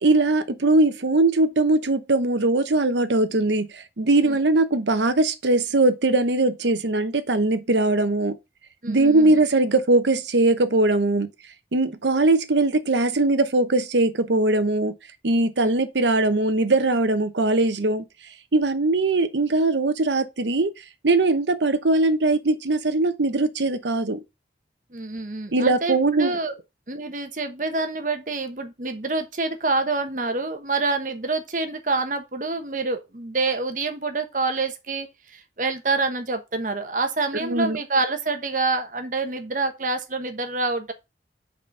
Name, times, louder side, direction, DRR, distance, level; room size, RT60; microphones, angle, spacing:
voice 1, 0.0-8.3 8.9-11.3 11.7-14.9 15.2-18.0 18.5-20.7 21.0-24.2 25.5-26.4 37.4-37.8, right 2 dB, 80° right, 0.9 m, -21 dB
voice 2, 8.8-9.4 15.6-15.7 24.9-26.5 26.9-40.9, right 3 dB, 45° right, 1.1 m, -27 dB
5.4 x 4.2 x 5.4 m
head